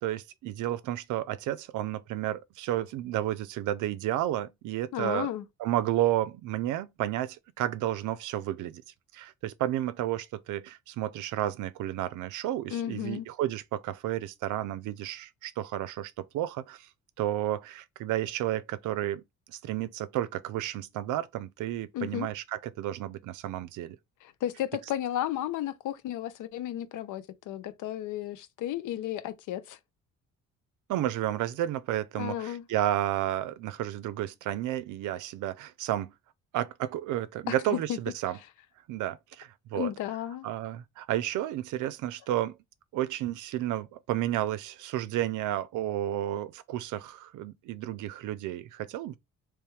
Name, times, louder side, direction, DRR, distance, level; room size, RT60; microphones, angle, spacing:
voice 1, 0.0-5.3 5.6-8.8 9.1-16.9 17.2-19.2 19.5-24.0 30.9-36.1 36.5-38.4 38.9-39.9 40.4-42.6 42.9-49.2, right 13 dB, 85° right, 0.5 m, -32 dB
voice 2, 4.9-5.4 12.7-13.3 21.9-22.3 24.2-29.8 32.2-32.6 37.5-38.0 39.7-40.5, left 12 dB, 80° left, 0.6 m, -33 dB
3.4 x 3.1 x 3.2 m
cardioid pair, 90°, 30 cm